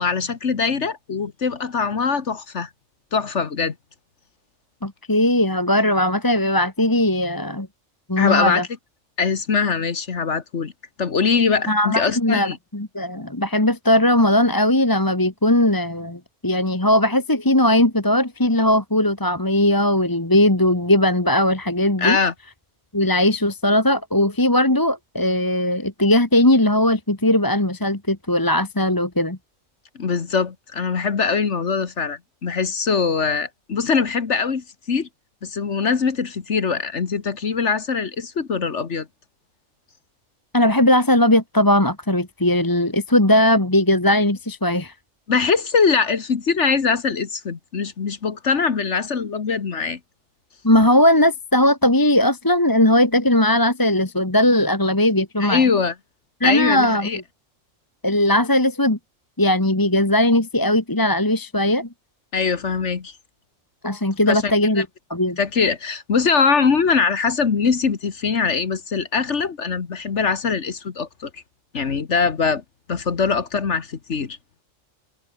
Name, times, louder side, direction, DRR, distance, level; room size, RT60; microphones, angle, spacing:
voice 1, 0.0-2.7 3.1-3.8 8.2-8.7 9.2-10.7 11.0-12.6 22.0-22.3 30.0-35.1 35.4-39.1 45.3-50.0 55.4-55.9 56.4-57.2 62.3-63.1 64.3-64.8 65.4-71.4 71.7-72.6 72.9-74.4, left 5 dB, 60° left, 1.8 m, -22 dB
voice 2, 4.8-7.7 8.1-8.6 11.7-22.2 22.9-29.4 40.5-44.9 50.6-55.6 56.4-57.1 58.0-59.0 59.4-61.9 63.8-64.9 65.1-65.4, left 1 dB, 15° left, 1.9 m, -18 dB
omnidirectional pair, 1.3 m